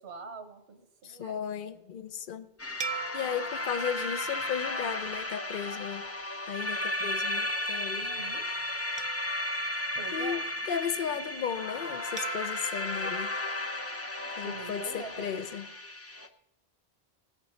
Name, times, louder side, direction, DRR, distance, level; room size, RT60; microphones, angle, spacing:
voice 1, 0.0-1.4 7.9-8.4 10.0-10.4 14.4-15.3, right 5 dB, 85° right, 7 dB, 1.2 m, -44 dB
voice 2, 1.0-2.5 3.1-6.1 6.5-8.1 10.1-13.3 14.4-15.7, left 8 dB, 60° left, 11 dB, 0.8 m, -35 dB
sound 1, 2.6-16.3, left 1 dB, 20° left, 0.5 m, -34 dB
sound 2, 2.8-5.5 6.1-6.2 9.0-10.8 12.2-14.5, right 6 dB, 45° right, 0.3 m, -43 dB
17.5 x 8.3 x 4.3 m, 0.92 s
omnidirectional pair, 1.0 m